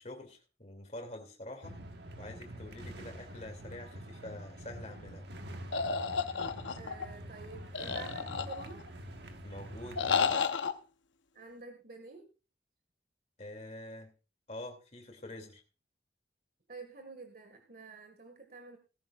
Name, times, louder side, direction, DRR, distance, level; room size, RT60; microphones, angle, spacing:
voice 1, 0.0-1.8 2.2-5.3 9.4-10.1 13.4-14.1 14.5-15.6, left 1 dB, 35° left, 4 dB, 2.7 m, -46 dB
sound 1, 1.6-10.3, right 1 dB, 65° right, 1.5 m, -46 dB
sound 2, 5.7-7.1 7.7-8.9 10.0-10.7, left 5 dB, 90° left, 0.9 m, -31 dB
voice 2, 6.8-8.8 11.3-12.3 16.7-18.8, right 3 dB, 50° right, 5 dB, 1.9 m, -49 dB
18.0 x 11.0 x 2.5 m, 0.32 s
head